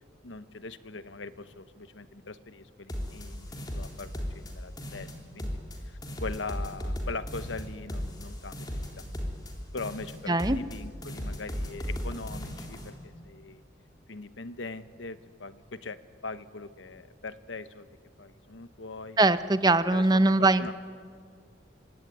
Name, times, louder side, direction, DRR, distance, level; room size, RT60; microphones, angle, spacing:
voice 1, 0.2-5.1 5.3-5.5 5.8-8.7 9.0-9.1 9.7-13.6 14.1-17.9 18.2-19.2 19.7-20.7, left 3 dB, 90° left, 12 dB, 1.1 m, -41 dB
sound 1, 2.9-4.5 4.8-5.8 6.0-9.5 9.8-10.8 11.0-12.9, equal, 20° left, 3.5 m, -36 dB
voice 2, 19.2-20.7, right 2 dB, 20° right, 12 dB, 0.7 m, -22 dB
25.0 x 23.5 x 9.4 m, 2.1 s
head